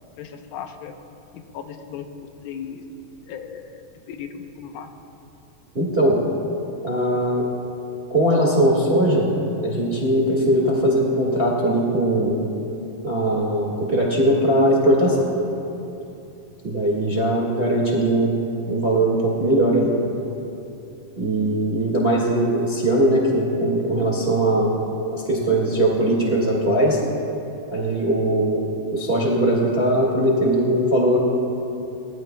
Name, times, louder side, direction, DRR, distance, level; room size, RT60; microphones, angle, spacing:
voice 1, 0.2-0.9 1.3-2.1 2.4-2.8 3.3-3.7 4.1-4.9, left 8 dB, 85° left, 6 dB, 2.7 m, -36 dB
voice 2, 5.7-6.2 6.8-7.4 8.1-9.3 9.6-12.4 13.0-15.3 16.6-18.4 18.7-19.9 21.2-24.7 25.1-27.0 27.7-28.6 28.9-31.2, right 1 dB, 30° right, -3 dB, 1.1 m, -20 dB
23.0 x 19.0 x 2.2 m, 2.8 s
omnidirectional pair, 4.1 m